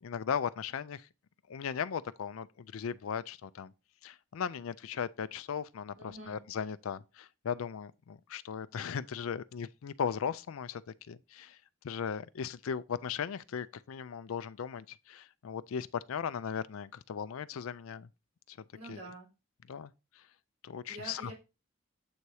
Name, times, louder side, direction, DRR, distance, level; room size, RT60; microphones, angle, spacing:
voice 1, 0.0-1.1 1.5-3.7 4.0-10.8 11.1-11.6 11.8-18.1 18.5-18.6 18.9-19.0 19.7-19.9 20.6-21.3, left 7 dB, 80° left, 0.4 m, -37 dB
voice 2, 5.9-6.4 18.7-19.3 20.9-21.3, right 1 dB, 80° right, 2.7 m, -46 dB
7.9 x 2.8 x 4.6 m
head